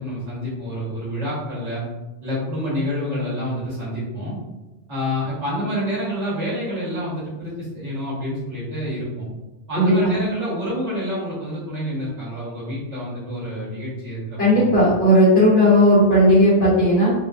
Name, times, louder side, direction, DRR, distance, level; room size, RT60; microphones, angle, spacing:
voice 1, 0.0-1.9 2.2-4.4 4.9-9.3 9.7-14.7, equal, 80° right, -8 dB, 1.5 m, -28 dB
voice 2, 9.7-10.1 14.4-17.1, equal, 75° left, -9 dB, 1.2 m, -15 dB
3.5 x 2.5 x 2.3 m, 1.1 s
omnidirectional pair, 1.2 m